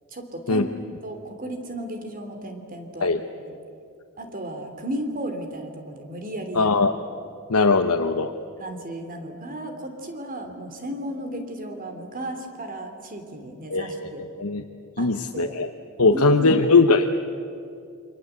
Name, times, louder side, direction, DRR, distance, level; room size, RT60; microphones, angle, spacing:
voice 1, 0.1-0.7 1.0-3.1 3.4-3.5 4.2-6.8 8.6-14.3 15.0-15.6 16.0-16.6, right 1 dB, 40° right, 6 dB, 3.2 m, -34 dB
voice 2, 6.5-6.9 7.5-8.3 13.7-14.1 14.4-14.6 15.0-15.7 16.0-17.1, left 3 dB, 90° left, 4 dB, 1.1 m, -20 dB
28.5 x 25.0 x 8.2 m, 2.4 s
head